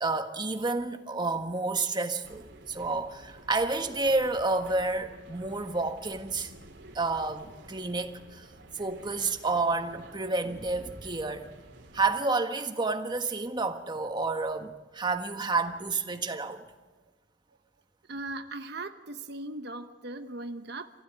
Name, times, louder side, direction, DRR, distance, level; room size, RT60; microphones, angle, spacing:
voice 1, 0.0-6.5 6.9-8.5 8.7-11.5 11.9-16.6, right 3 dB, 25° right, 1.5 m, -30 dB
sound 1, 2.2-12.1, right 1 dB, 85° right, 3.1 m, -51 dB
voice 2, 18.1-20.9, right 2 dB, 65° right, 1.0 m, -38 dB
28.0 x 16.0 x 9.4 m
head